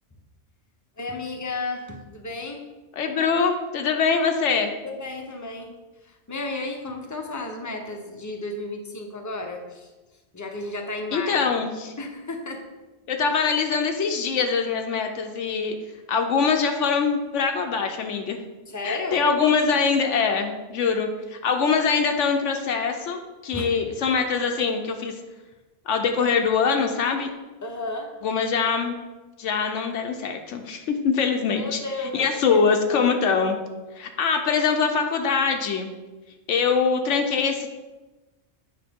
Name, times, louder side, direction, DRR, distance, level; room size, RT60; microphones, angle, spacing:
voice 1, 1.0-2.6 3.1-3.4 4.8-5.7 6.0-9.9 10.3-11.5 12.0-12.7 18.7-19.3 23.5-23.7 27.6-28.1 31.5-32.6 32.9-33.1, left 2 dB, 20° left, 3 dB, 0.7 m, -33 dB
voice 2, 3.0-4.7 11.1-11.9 13.1-15.7 16.1-18.4 18.8-25.1 25.9-27.3 28.2-29.0 29.4-31.8 32.1-33.6 34.0-35.9 36.5-37.7, left 5 dB, 80° left, 4 dB, 1.0 m, -23 dB
8.6 x 5.3 x 3.6 m, 1.2 s
omnidirectional pair, 1.2 m